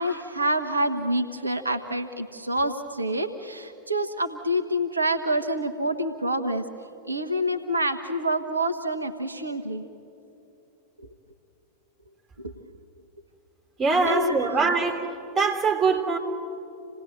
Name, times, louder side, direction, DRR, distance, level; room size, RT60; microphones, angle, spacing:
voice 1, 0.0-6.6 7.1-9.8 11.0-11.1 12.4-12.5 14.0-14.5, right 1 dB, 80° right, 6 dB, 1.0 m, -27 dB
voice 2, 13.8-15.1 15.4-16.2, right 4 dB, 20° right, 3 dB, 3.5 m, -23 dB
27.0 x 18.0 x 8.0 m, 2.7 s
figure-of-eight pair, 90°, 0 cm